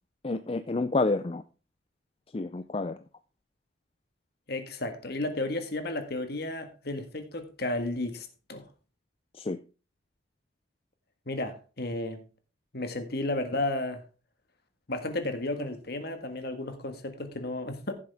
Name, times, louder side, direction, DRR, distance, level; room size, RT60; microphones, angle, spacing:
voice 1, 0.2-1.4 2.3-3.0 9.3-9.6, left 3 dB, 30° left, 0.4 m, -29 dB
voice 2, 4.5-8.7 11.3-12.3 12.7-14.0 14.9-17.9, left 2 dB, 50° left, 1.6 m, -33 dB
15.0 x 7.5 x 3.5 m
head